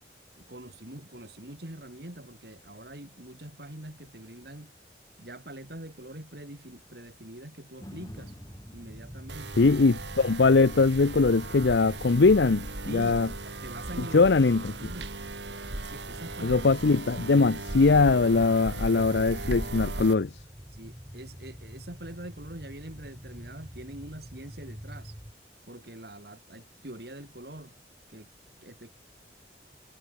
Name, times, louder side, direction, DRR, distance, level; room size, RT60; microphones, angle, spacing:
voice 1, 0.3-4.7 5.2-8.4 8.7-9.6 12.9-13.1 13.6-14.2 14.8-15.1 15.7-16.6 20.7-25.2 25.7-27.7 28.1-28.3 28.6-28.9, right 1 dB, 60° right, 3.4 m, -44 dB
sound 1, 7.8-16.0 16.5-16.6, equal, 20° left, 6.9 m, -53 dB
sound 2, 8.1-25.3, equal, 15° right, 3.8 m, -47 dB
sound 3, 9.3-20.1, right 2 dB, 85° right, 3.3 m, -37 dB
voice 2, 9.6-13.3 14.1-14.7 16.4-20.3, left 3 dB, 75° left, 0.6 m, -21 dB
head